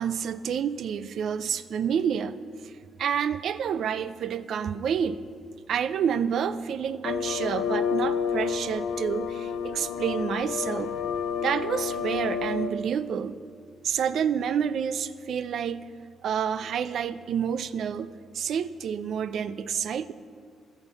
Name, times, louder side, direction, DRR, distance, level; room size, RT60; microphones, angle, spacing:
voice 1, 0.0-2.4 2.6-2.7 3.0-5.2 5.7-11.0 11.4-13.4 13.8-15.9 16.2-20.1, right 8 dB, 65° right, 15 dB, 0.5 m, -29 dB
sound 1, 7.0-12.7, left 7 dB, 80° left, 0.5 m, -30 dB
14.0 x 7.2 x 6.9 m, 2.1 s
cardioid pair, 90°, 0 cm